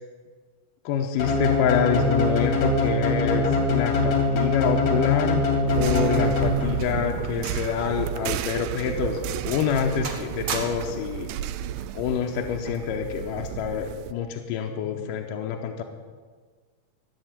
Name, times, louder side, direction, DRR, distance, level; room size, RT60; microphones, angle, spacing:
voice 1, 0.9-5.5 5.7-11.3 12.0-15.8, left 8 dB, 80° left, 3 dB, 2.4 m, -27 dB
sound 1, 1.2-7.0, left 2 dB, 60° left, 3.3 m, -23 dB
sound 2, 5.7-14.1, right 10 dB, 80° right, 2.0 m, -32 dB
sound 3, 6.7-7.9 8.1-8.3 8.9-9.1 9.5-9.8 10.0-11.1 12.1-12.4, right 5 dB, 50° right, 1.7 m, -37 dB
15.5 x 7.1 x 9.1 m, 1.5 s
omnidirectional pair, 3.9 m